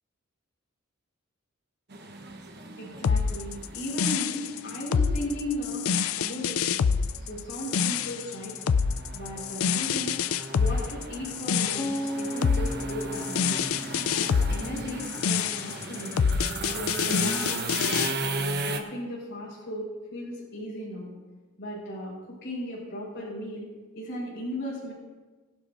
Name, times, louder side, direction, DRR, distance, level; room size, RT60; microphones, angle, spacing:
sound 1, 1.9-18.8, right 2 dB, 50° right, 1.1 m, -37 dB
voice 1, 2.8-6.8 7.2-8.6 9.1-10.2 10.5-13.6 14.1-16.2 16.7-21.1 21.6-22.1 22.4-23.7 23.9-24.9, left 1 dB, 55° left, -9 dB, 4.6 m, -36 dB
sound 2, 3.0-18.1, left 6 dB, 75° left, 0.4 m, -26 dB
sound 3, 11.8-15.7, equal, 20° left, 1.5 m, -37 dB
21.5 x 11.5 x 2.6 m, 1.3 s
head